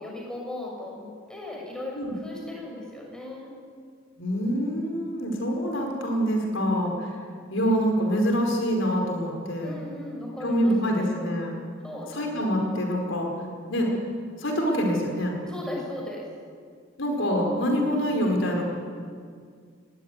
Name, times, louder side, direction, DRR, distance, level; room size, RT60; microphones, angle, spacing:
voice 1, 0.0-3.5 6.4-7.4 9.6-11.2 11.8-12.2 15.5-16.2, left 1 dB, 5° left, -2 dB, 6.2 m, -37 dB
voice 2, 4.2-7.2 7.5-9.8 10.4-11.6 12.1-13.3 13.7-13.9 14.4-15.4 17.0-18.6, equal, 75° left, 1 dB, 4.9 m, -25 dB
21.0 x 17.0 x 10.0 m, 2.1 s
head